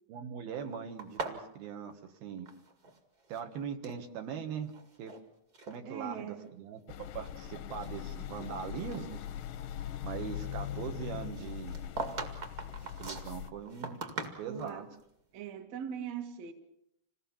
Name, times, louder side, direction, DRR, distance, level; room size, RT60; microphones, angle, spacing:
voice 1, 0.1-2.5 3.3-4.7 5.0-5.1 5.7-9.2 10.0-11.8 13.0-14.0 14.4-14.9, right 7 dB, 70° right, 3.3 m, -41 dB
sound 1, 1.0-3.0 3.2-4.0 4.6-5.2 5.5-5.8 6.4-6.5 7.1-8.6 8.9-9.0 11.3-14.8, right 4 dB, 30° right, 1.7 m, -41 dB
voice 2, 5.8-6.5 14.5-14.9 15.3-16.5, right 8 dB, 55° right, 2.3 m, -41 dB
sound 2, 6.9-13.5, left 10 dB, 70° left, 2.0 m, -41 dB
27.0 x 18.0 x 7.2 m
omnidirectional pair, 4.6 m